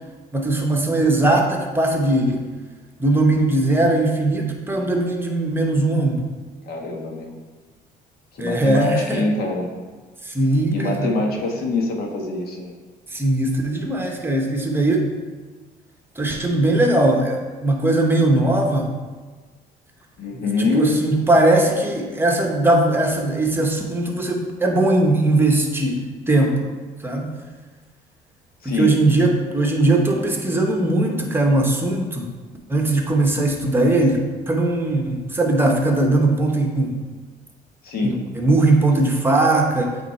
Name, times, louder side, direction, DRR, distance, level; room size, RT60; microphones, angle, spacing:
voice 1, 0.3-2.5 3.0-6.2 8.4-9.2 10.2-11.1 13.1-15.1 16.2-18.9 20.6-26.7 27.0-27.3 28.6-32.3 32.7-37.0 38.0-40.0, right 2 dB, 15° right, 1 dB, 0.9 m, -19 dB
voice 2, 6.7-7.3 8.3-9.7 10.7-12.8 20.2-21.0 28.6-29.0 37.8-38.2, left 3 dB, 65° left, 1 dB, 1.1 m, -24 dB
8.2 x 3.1 x 4.4 m, 1.3 s
cardioid pair, 110°, 17 cm